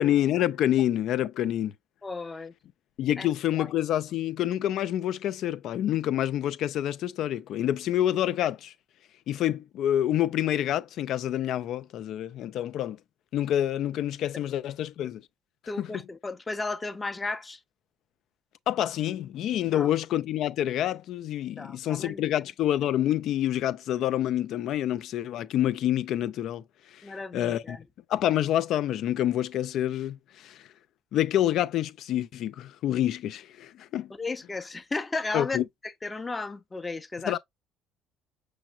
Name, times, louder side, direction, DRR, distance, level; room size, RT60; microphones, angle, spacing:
voice 1, 0.0-1.7 3.0-8.7 9.3-13.0 13.3-15.2 15.8-16.0 18.7-26.6 26.9-27.8 28.1-30.7 31.1-34.1 35.3-35.6 37.2-37.4, left 12 dB, 65° left, 0.5 m, -27 dB
voice 2, 2.0-2.5 3.2-3.3 3.5-3.7 15.7-17.6 19.7-19.9 21.6-22.2 27.0-27.8 34.1-35.6 36.0-37.4, left 3 dB, 20° left, 0.8 m, -34 dB
5.9 x 3.2 x 2.4 m
supercardioid pair, 70°, 0 cm